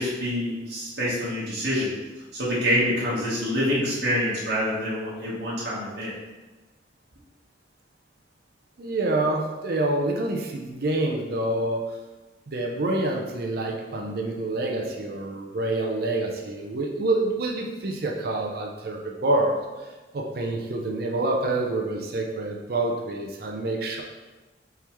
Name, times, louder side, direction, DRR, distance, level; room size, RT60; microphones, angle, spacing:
voice 1, 0.0-1.9 2.3-6.1, equal, 70° right, -8 dB, 1.2 m, -26 dB
voice 2, 8.8-11.8 12.5-19.9 20.1-24.0, right 2 dB, 55° right, 1 dB, 0.5 m, -27 dB
4.4 x 3.5 x 3.0 m, 1.2 s
head